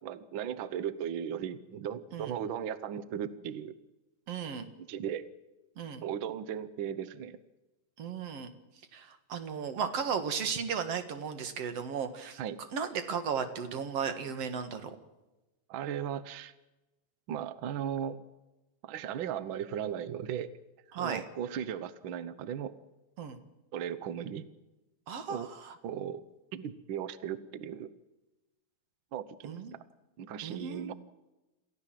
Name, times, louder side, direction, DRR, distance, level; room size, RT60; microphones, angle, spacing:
voice 1, 0.0-3.7 4.8-5.3 6.0-7.4 12.4-12.6 15.7-16.5 17.3-18.2 18.8-20.5 21.0-22.7 23.7-24.5 25.3-25.5 25.8-26.2 26.5-27.9 29.1-29.8 30.2-30.9, right 9 dB, 85° right, 15 dB, 1.1 m, -37 dB
voice 2, 4.3-4.7 5.8-6.0 8.0-8.5 8.9-12.4 12.7-14.9 20.9-21.2 23.2-23.4 25.1-25.8 29.4-29.7 30.4-30.9, right 6 dB, 55° right, 9 dB, 2.5 m, -35 dB
27.5 x 15.0 x 7.6 m, 1.0 s
omnidirectional pair, 3.6 m